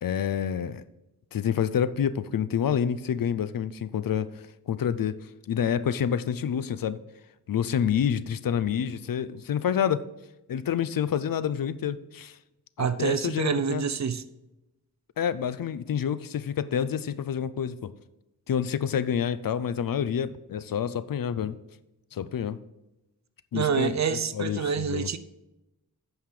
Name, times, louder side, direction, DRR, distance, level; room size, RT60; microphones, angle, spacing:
voice 1, 0.0-0.8 1.3-5.2 5.5-7.0 7.5-10.1 10.5-12.4 12.8-13.8 15.2-17.9 18.5-21.6 22.1-22.6 23.5-25.1, left 8 dB, 60° left, 15 dB, 0.5 m, -28 dB
voice 2, 12.8-14.2 23.5-25.2, right 7 dB, 45° right, 13 dB, 0.6 m, -27 dB
9.0 x 5.6 x 4.8 m, 0.95 s
wide cardioid pair, 120°, 38 cm